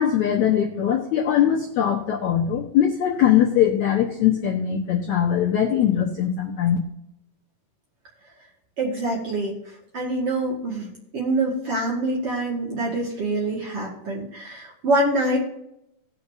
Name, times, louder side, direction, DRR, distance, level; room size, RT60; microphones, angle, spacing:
voice 1, 0.0-6.8, left 9 dB, 70° left, -2 dB, 1.8 m, -21 dB
voice 2, 8.8-9.6 9.9-15.4, right 2 dB, 45° right, -3 dB, 2.1 m, -25 dB
19.5 x 6.6 x 2.7 m, 0.82 s
omnidirectional pair, 4.7 m